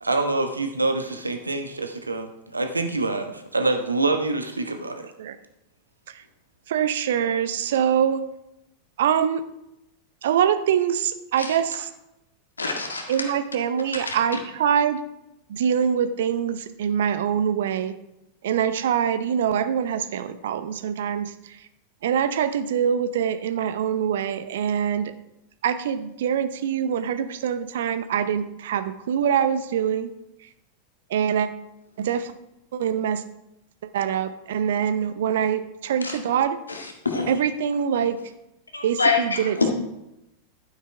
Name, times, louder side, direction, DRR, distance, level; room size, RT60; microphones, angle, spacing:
voice 1, 0.0-5.0, right 3 dB, 80° right, 6 dB, 1.1 m, -26 dB
voice 2, 6.7-8.2 9.0-9.4 10.2-11.9 13.1-15.0 15.5-17.9 18.4-21.3 22.0-25.1 25.6-30.1 31.1-31.5 32.0-32.3 32.7-33.2 33.9-36.6 37.3-38.2 38.8-39.7, right 8 dB, 60° right, 12 dB, 0.7 m, -24 dB
voice 3, 12.6-13.1 13.9-14.1 36.0-36.2 36.7-36.8 37.1-37.3 38.7-39.7, left 4 dB, 75° left, 2 dB, 1.8 m, -25 dB
11.5 x 9.3 x 3.4 m, 0.89 s
figure-of-eight pair, 90°, 0 cm